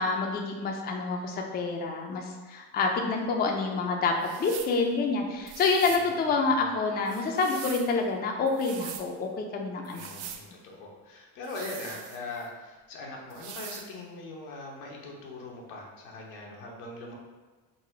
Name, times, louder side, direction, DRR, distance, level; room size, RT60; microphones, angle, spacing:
voice 1, 0.0-10.1, left 4 dB, 25° left, 2 dB, 0.4 m, -28 dB
sound 1, 4.2-4.8 5.5-6.1 7.1-7.9 8.5-9.1 9.8-10.4 11.4-12.5 13.3-13.9, right 8 dB, 65° right, 0.6 m, -42 dB
voice 2, 5.8-6.7 9.9-17.1, left 2 dB, 90° left, -2 dB, 1.0 m, -41 dB
4.0 x 2.2 x 4.3 m, 1.3 s
supercardioid pair, 105°, 41 cm